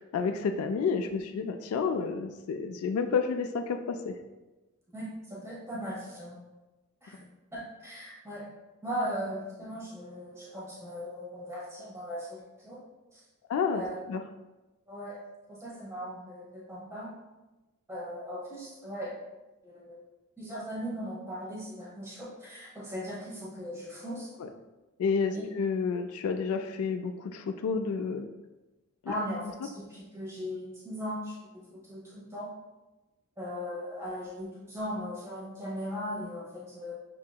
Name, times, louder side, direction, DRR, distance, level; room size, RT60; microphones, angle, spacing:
voice 1, 0.0-4.1 13.5-13.8 14.1-14.2 25.0-28.3, left 5 dB, 85° left, 7 dB, 0.3 m, -30 dB
voice 2, 4.9-6.4 7.0-8.5 8.8-12.8 13.1-13.2 13.7-14.0 14.9-15.2 15.5-17.1 17.9-19.1 19.6-20.0 20.4-24.3 25.3-25.4 29.1-32.5 33.4-36.9, equal, 15° right, -7 dB, 0.9 m, -38 dB
6.0 x 2.7 x 2.2 m, 1.1 s
head